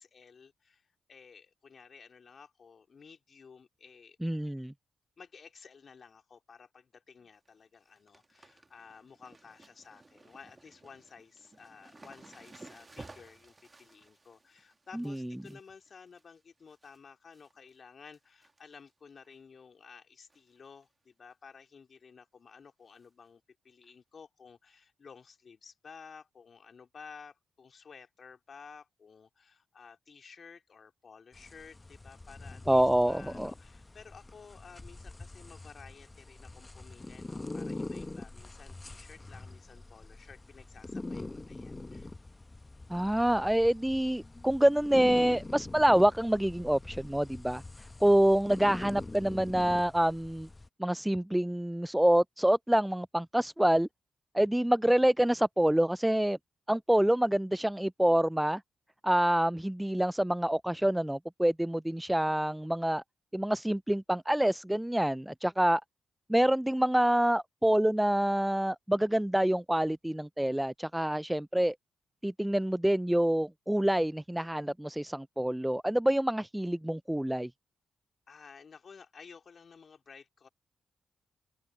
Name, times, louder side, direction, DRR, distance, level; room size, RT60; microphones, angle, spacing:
voice 1, 0.0-4.2 5.2-42.1 78.3-80.5, left 5 dB, 55° left, 2.4 m, -54 dB
voice 2, 4.2-4.7 15.0-15.2 32.7-33.5 42.9-47.6 48.0-50.5 50.8-53.9 54.3-56.4 56.7-58.6 59.0-63.0 63.3-65.8 66.3-71.7 72.2-77.5, right 1 dB, 5° right, 0.3 m, -27 dB
sound 1, 7.2-7.5 7.8-17.0 17.3-17.8 18.1-18.9 19.2-19.3 20.3-20.6 20.8-20.9 21.3-21.4 23.0-23.1 23.8-23.9, right 3 dB, 30° right, 2.0 m, -56 dB
sound 2, 31.3-50.7, left 2 dB, 25° left, 1.2 m, -44 dB
open air
supercardioid pair, 50°, 0 cm